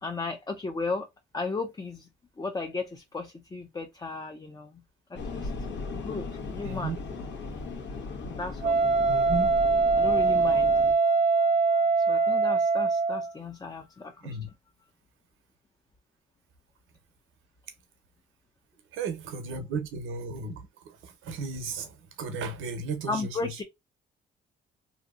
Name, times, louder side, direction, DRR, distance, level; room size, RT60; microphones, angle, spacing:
voice 1, 0.0-1.1 1.3-2.1 2.4-4.8 5.1-5.5 5.9-7.0 8.3-8.8 10.0-10.7 12.1-14.4 23.1-23.6, left 3 dB, 20° left, 0.5 m, -35 dB
sound 1, 5.1-10.9, left 3 dB, 65° left, 1.0 m, -37 dB
voice 2, 6.6-7.0 9.1-9.5 14.2-14.5 18.9-20.6 21.0-23.3, right 4 dB, 85° right, 0.9 m, -34 dB
Wind instrument woodwind instrument, 8.6-13.3, right 4 dB, 35° right, 0.5 m, -23 dB
2.8 x 2.6 x 2.4 m
cardioid pair, 90°, 20 cm